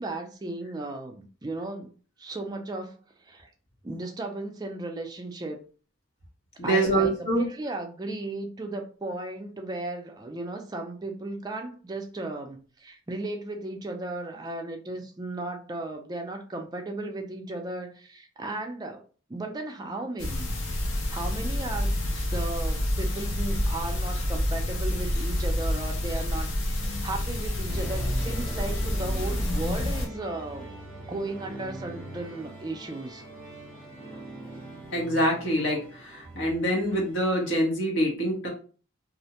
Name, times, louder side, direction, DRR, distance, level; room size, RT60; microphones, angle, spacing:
voice 1, 0.0-1.9 2.2-3.5 3.8-5.6 6.6-19.0 19.3-20.6 21.1-30.7 31.1-33.2, right 2 dB, 20° right, 0.3 m, -35 dB
voice 2, 6.6-7.4 34.9-38.5, right 1 dB, 65° left, 0.9 m, -25 dB
sound 1, 20.2-30.1, left 1 dB, 85° left, 0.6 m, -28 dB
sound 2, 27.7-37.6, right 1 dB, 10° left, 0.7 m, -41 dB
2.4 x 2.1 x 2.7 m
head